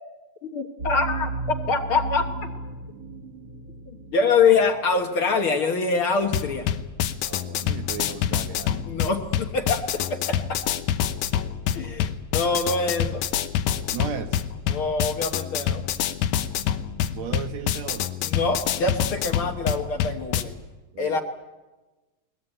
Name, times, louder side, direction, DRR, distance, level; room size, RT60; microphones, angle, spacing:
voice 1, 0.4-1.3 1.7-2.3 4.1-6.7 8.9-10.6 11.7-13.2 14.7-15.8 18.2-20.5 21.0-21.2, left 4 dB, 55° left, 5 dB, 1.7 m, -24 dB
sound 1, 0.8-5.6, right 3 dB, 50° right, 2.1 m, -34 dB
sound 2, 6.2-20.4, left 10 dB, 85° left, 2.4 m, -27 dB
voice 2, 7.3-8.9 13.9-14.4 17.1-18.2 20.9-21.2, right 7 dB, 70° right, 7 dB, 2.4 m, -35 dB
21.0 x 20.5 x 8.9 m, 1.2 s
omnidirectional pair, 3.3 m